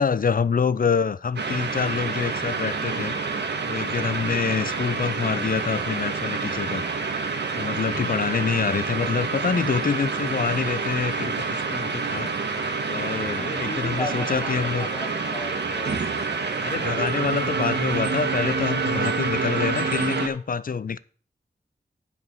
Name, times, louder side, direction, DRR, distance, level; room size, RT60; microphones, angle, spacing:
voice 1, 0.0-3.1 3.7-6.8 7.5-12.3 12.9-14.9 16.6-21.0, left 6 dB, 55° left, 0.6 m, -26 dB
sound 1, 1.4-20.3, right 4 dB, 80° right, 1.4 m, -27 dB
voice 2, 13.4-16.0, left 1 dB, 25° left, 2.1 m, -35 dB
9.6 x 5.2 x 6.6 m
cardioid pair, 50°, 17 cm